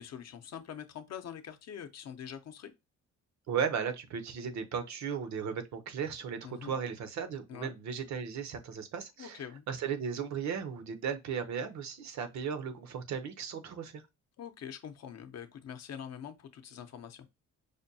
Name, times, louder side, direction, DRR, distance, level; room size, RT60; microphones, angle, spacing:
voice 1, 0.0-2.7 6.4-6.8 7.5-7.8 9.2-9.6 14.4-17.3, left 8 dB, 60° left, 0.6 m, -44 dB
voice 2, 3.5-9.4 9.7-14.0, right 7 dB, 65° right, 0.7 m, -36 dB
5.0 x 2.2 x 2.6 m
cardioid pair, 90°, 30 cm